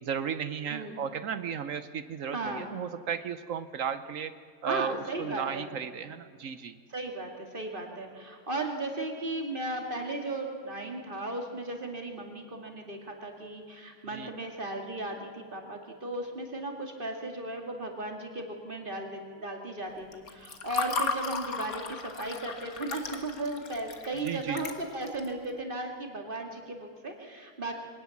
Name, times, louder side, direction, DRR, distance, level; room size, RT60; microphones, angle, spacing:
voice 1, 0.0-4.3 4.6-6.7 14.1-14.3 24.2-24.6, right 7 dB, 65° right, 12 dB, 1.1 m, -34 dB
voice 2, 2.3-2.7 4.7-5.7 6.9-27.7, right 2 dB, 35° right, 3 dB, 2.5 m, -36 dB
Water / Fill (with liquid), 20.1-25.3, left 4 dB, 70° left, 1.9 m, -35 dB
22.5 x 18.0 x 7.2 m, 2.1 s
omnidirectional pair, 1.6 m